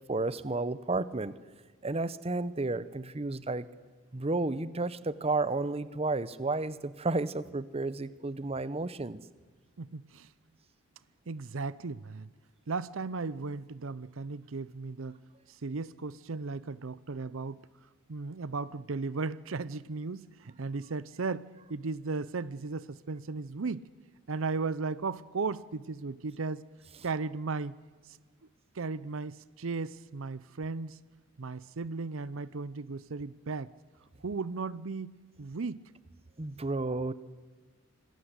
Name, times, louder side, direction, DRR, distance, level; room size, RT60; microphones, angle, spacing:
voice 1, 0.1-1.3 1.8-3.7 4.1-9.2 36.4-37.1, right 3 dB, 30° right, 16 dB, 0.8 m, -32 dB
voice 2, 9.8-10.3 11.3-12.3 12.7-15.2 15.5-17.6 18.1-23.9 24.3-26.6 27.0-27.8 28.0-28.2 28.7-31.0 31.4-33.7 34.2-35.8, right 4 dB, 70° right, 18 dB, 0.7 m, -36 dB
26.5 x 20.0 x 8.2 m, 1.4 s
head